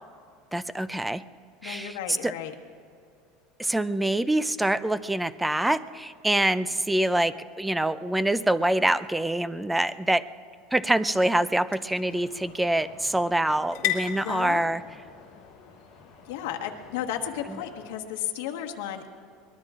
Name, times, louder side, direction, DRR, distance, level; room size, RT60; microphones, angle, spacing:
voice 1, 0.5-1.2 1.6-2.3 3.6-10.3 10.7-14.8, right 1 dB, 5° right, 15 dB, 0.3 m, -25 dB
voice 2, 1.6-2.5 14.2-14.7 16.3-19.1, left 10 dB, 75° left, 2 dB, 1.4 m, -33 dB
sound 1, 10.6-18.1, left 12 dB, 55° left, 2.1 m, -39 dB
sound 2, 12.0-17.9, left 5 dB, 25° left, 4.2 m, -50 dB
23.5 x 20.5 x 2.5 m, 2.4 s
supercardioid pair, 165°, 0 cm